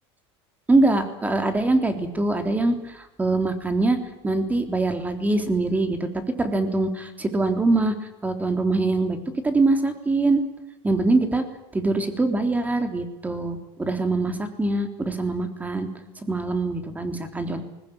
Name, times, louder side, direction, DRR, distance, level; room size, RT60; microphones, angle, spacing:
voice 1, 0.7-4.0 4.2-6.1 6.4-7.9 8.2-9.2 9.4-10.4 10.8-11.4 11.7-15.9 16.3-17.6, right 2 dB, 10° right, 7 dB, 3.6 m, -23 dB
21.5 x 19.5 x 8.9 m, 0.95 s
supercardioid pair, 125°, 13 cm